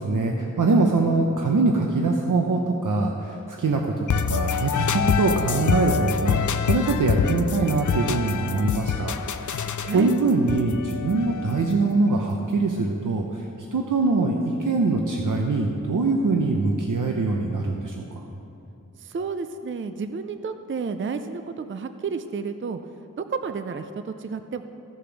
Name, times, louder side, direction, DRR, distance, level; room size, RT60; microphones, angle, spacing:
voice 1, 0.0-13.4 13.7-18.3, right 3 dB, 70° right, 1 dB, 0.7 m, -23 dB
sound 1, 4.1-11.9, left 7 dB, 65° left, 0.5 m, -26 dB
voice 2, 9.9-10.2 19.0-22.8 23.3-24.6, right 5 dB, 40° right, 9 dB, 0.4 m, -31 dB
15.0 x 5.1 x 5.9 m, 2.8 s
wide cardioid pair, 65°, 32 cm